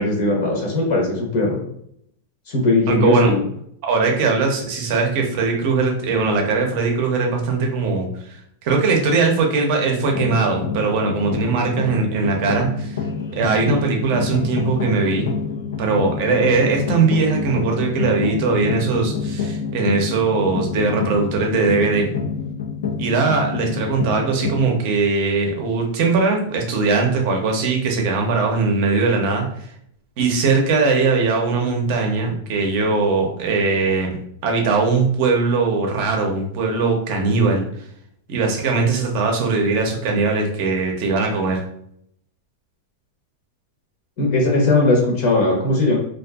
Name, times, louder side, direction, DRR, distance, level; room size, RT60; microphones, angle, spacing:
voice 1, 0.0-1.6 2.5-3.4 44.2-46.0, left 2 dB, 45° left, -1 dB, 0.8 m, -18 dB
voice 2, 2.9-3.3 3.8-13.0 13.3-15.3 15.8-22.1 23.0-29.4 30.2-37.7 38.3-41.6, right 4 dB, 45° right, 2 dB, 0.6 m, -20 dB
sound 1, 10.0-24.6, left 5 dB, 90° left, 0.4 m, -27 dB
2.5 x 2.3 x 2.3 m, 0.70 s
supercardioid pair, 165°, 0 cm